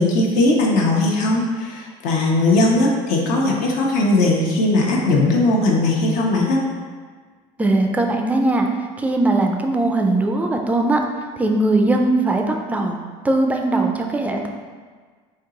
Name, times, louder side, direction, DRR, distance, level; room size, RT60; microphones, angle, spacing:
voice 1, 0.0-6.6, left 2 dB, 70° left, -2 dB, 0.9 m, -18 dB
voice 2, 7.6-8.7 9.0-11.0 11.4-14.5, right 2 dB, 10° right, 3 dB, 0.4 m, -20 dB
4.6 x 2.8 x 3.7 m, 1.6 s
cardioid pair, 145°, 14 cm